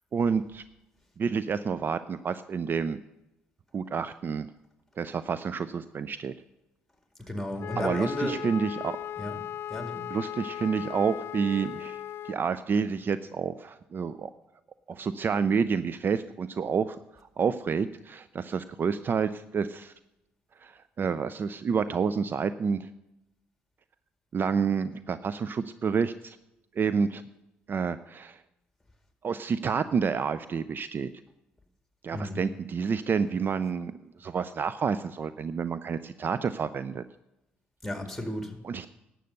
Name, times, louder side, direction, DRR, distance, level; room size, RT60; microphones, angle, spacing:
voice 1, 0.1-0.6 1.2-3.0 3.7-4.5 5.0-6.3 7.8-9.0 10.1-12.0 12.2-14.3 14.9-17.0 17.4-19.9 20.6-22.9 24.3-26.4 26.8-27.2 27.7-28.4 29.2-31.1 32.0-37.0 38.6-38.9, right 6 dB, 45° right, 14 dB, 0.4 m, -29 dB
voice 2, 7.2-8.4 9.2-9.4 9.7-10.1 32.1-32.5 37.8-38.6, left 1 dB, 5° left, 5 dB, 2.2 m, -33 dB
Wind instrument woodwind instrument, 7.6-12.4, left 11 dB, 55° left, 0.3 m, -37 dB
11.5 x 7.7 x 6.6 m, 0.91 s
hypercardioid pair, 55°, 5 cm